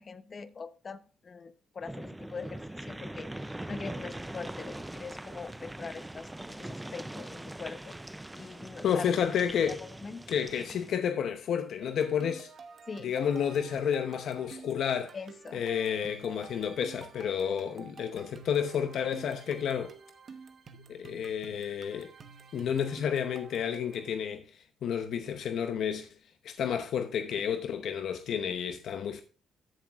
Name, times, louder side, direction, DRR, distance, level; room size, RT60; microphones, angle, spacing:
voice 1, 0.0-8.0 8.4-9.1 9.6-10.2 12.9-13.1 15.1-15.6, left 5 dB, 40° left, 0.8 m, -43 dB
sound 1, 1.8-11.0, right 1 dB, 10° right, 0.4 m, -42 dB
voice 2, 8.8-9.8 10.3-12.5 13.0-15.1 15.5-19.9 20.9-22.1 22.5-24.5 24.8-26.1 26.4-29.2, left 8 dB, 70° left, 0.7 m, -31 dB
sound 2, 11.8-24.1, right 5 dB, 50° right, 1.0 m, -50 dB
13.5 x 7.3 x 2.4 m
cardioid pair, 90°, 0 cm